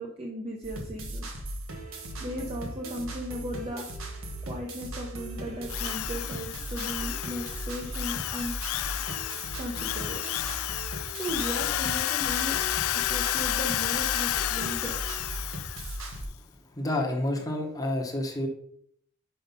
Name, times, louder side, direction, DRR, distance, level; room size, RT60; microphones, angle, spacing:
voice 1, 0.0-1.4 2.2-3.9 4.4-8.5 9.6-10.2 11.2-12.6 12.9-15.0, equal, 30° right, -1 dB, 0.9 m, -36 dB
sound 1, 0.6-16.2, right 1 dB, 75° right, 1.4 m, -38 dB
Drill, 5.7-16.1, left 14 dB, 85° left, 0.3 m, -31 dB
voice 2, 16.7-18.5, left 1 dB, 20° left, 0 dB, 1.1 m, -29 dB
5.7 x 5.1 x 5.2 m, 0.66 s
head